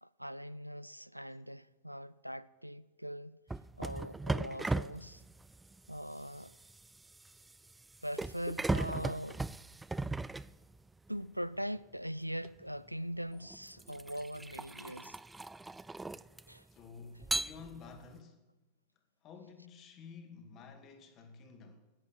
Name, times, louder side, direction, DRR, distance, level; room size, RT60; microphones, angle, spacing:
voice 1, 0.0-3.4 3.8-5.2 5.9-6.6 8.0-9.4 11.1-15.2 16.5-16.7, equal, 90° right, 0.4 m, -41 dB
sound 1, 3.5-11.1 12.4-12.6 13.3-16.7 17.2-18.1, right 2 dB, 10° right, 0.3 m, -38 dB
voice 2, 16.7-18.5 19.2-21.9, left 5 dB, 35° left, 2.1 m, -52 dB
11.0 x 8.7 x 8.6 m
figure-of-eight pair, 90°, 0 cm